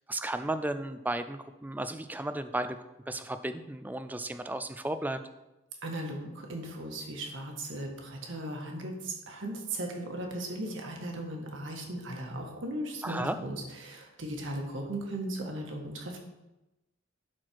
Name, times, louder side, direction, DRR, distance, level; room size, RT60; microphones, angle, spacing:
voice 1, 0.1-2.8 3.1-5.2 13.0-13.4, right 1 dB, 10° right, 10 dB, 0.4 m, -34 dB
voice 2, 5.8-16.2, right 1 dB, 65° right, 1 dB, 1.7 m, -37 dB
11.5 x 4.5 x 4.6 m, 1.0 s
head